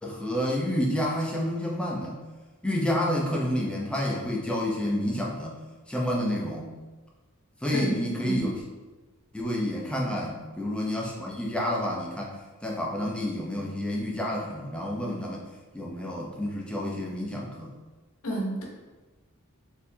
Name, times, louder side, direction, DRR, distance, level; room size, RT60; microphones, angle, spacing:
voice 1, 0.0-2.2 2.6-5.6 5.9-6.7 7.6-8.6 9.3-12.3 12.6-15.4 15.7-17.7, left 1 dB, 5° left, -3 dB, 0.5 m, -29 dB
voice 2, 18.2-18.6, right 1 dB, 65° left, -1 dB, 0.8 m, -30 dB
4.1 x 2.8 x 2.7 m, 1.2 s
head